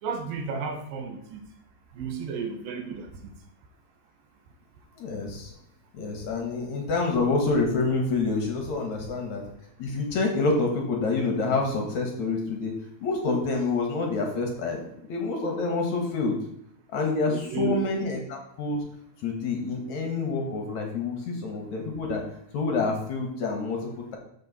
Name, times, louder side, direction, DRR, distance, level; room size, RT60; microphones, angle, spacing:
voice 1, 0.0-1.4 1.9-3.3 17.3-17.9, right 4 dB, 75° right, 6 dB, 2.6 m, -32 dB
voice 2, 5.0-5.5 5.9-9.5 9.8-12.7 13.0-14.8 15.1-16.4 16.9-18.8 19.2-22.2 22.5-24.2, left 3 dB, 60° left, 2 dB, 2.3 m, -27 dB
13.0 x 5.7 x 4.1 m, 0.74 s
omnidirectional pair, 4.3 m